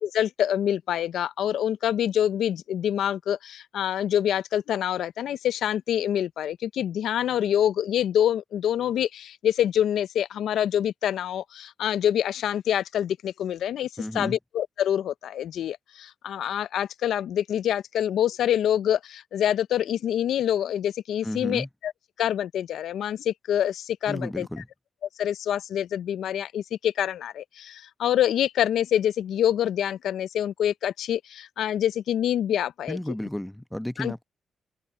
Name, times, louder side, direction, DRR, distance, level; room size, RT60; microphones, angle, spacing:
voice 1, 0.0-13.9 14.1-21.9 22.2-24.5 25.2-33.0 34.0-34.1, left 10 dB, 75° left, 0.5 m, -26 dB
voice 2, 14.0-14.4 21.2-21.7 24.1-24.7 32.9-34.2, left 1 dB, 5° left, 1.1 m, -32 dB
open air
supercardioid pair, 55°, 0 cm